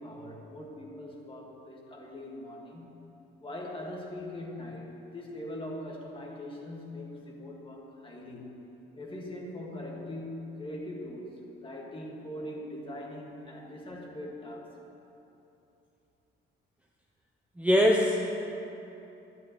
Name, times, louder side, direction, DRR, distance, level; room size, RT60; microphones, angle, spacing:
voice 1, 0.0-3.1 3.4-8.5 9.0-14.7, left 1 dB, 25° left, -2 dB, 1.8 m, -41 dB
voice 2, 17.6-18.3, equal, 5° right, -1 dB, 0.6 m, -22 dB
11.5 x 10.5 x 3.1 m, 2.9 s
cardioid pair, 100°, 21 cm